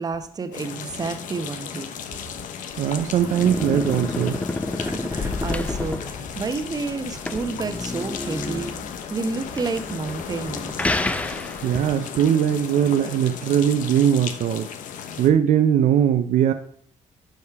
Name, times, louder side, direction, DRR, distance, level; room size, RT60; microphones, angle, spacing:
voice 1, 0.0-1.9 4.8-8.7 9.1-10.9, right 4 dB, 30° right, 8 dB, 1.1 m, -30 dB
sound 1, 0.5-15.3, left 8 dB, 75° left, 1.1 m, -35 dB
sound 2, 2.7-12.0, left 2 dB, 10° left, 0.6 m, -30 dB
voice 2, 2.8-4.4 11.3-14.7 15.2-16.5, right 9 dB, 65° right, 8 dB, 0.7 m, -20 dB
sound 3, 5.1-8.5, left 4 dB, 50° left, 3.1 m, -35 dB
11.5 x 5.4 x 4.7 m, 0.64 s
cardioid pair, 120°, 14 cm